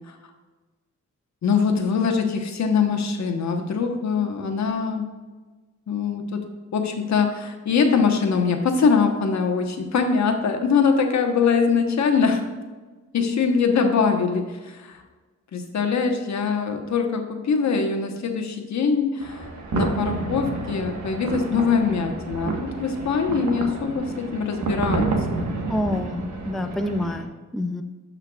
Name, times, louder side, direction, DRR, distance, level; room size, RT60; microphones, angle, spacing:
voice 1, 1.4-5.1 5.9-6.4 6.7-12.4 13.1-15.0 15.5-25.5, left 5 dB, 65° left, 4 dB, 1.2 m, -23 dB
sound 1, 19.2-27.2, right 3 dB, 70° right, 1.4 m, -29 dB
voice 2, 25.7-27.8, left 1 dB, ahead, 6 dB, 0.4 m, -28 dB
13.0 x 5.7 x 2.4 m, 1.3 s
cardioid pair, 100°, 30 cm